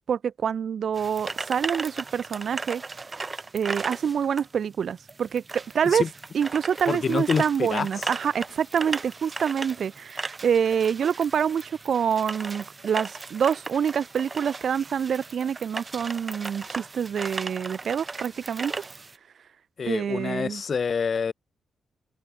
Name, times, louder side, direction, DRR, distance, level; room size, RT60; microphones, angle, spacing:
voice 1, 0.1-2.8 3.5-6.0 6.3-18.8 19.9-20.6, right 7 dB, 60° right, 1.0 m, -26 dB
sound 1, 0.9-19.2, right 3 dB, 25° right, 3.9 m, -37 dB
voice 2, 6.9-7.9 19.8-21.3, left 6 dB, 45° left, 2.6 m, -27 dB
cardioid pair, 125°, 0 cm